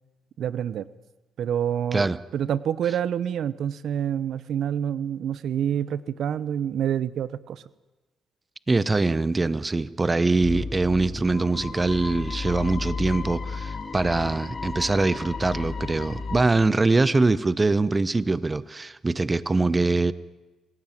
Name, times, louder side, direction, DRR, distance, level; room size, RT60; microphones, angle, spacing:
voice 1, 0.4-0.9 1.4-7.6, right 9 dB, 70° right, 18 dB, 0.9 m, -27 dB
voice 2, 8.7-20.1, right 3 dB, 20° right, 18 dB, 0.9 m, -23 dB
sound 1, 10.4-16.4, left 4 dB, 35° left, 4.1 m, -33 dB
27.5 x 15.5 x 9.1 m, 1.2 s
cardioid pair, 90°, 0 cm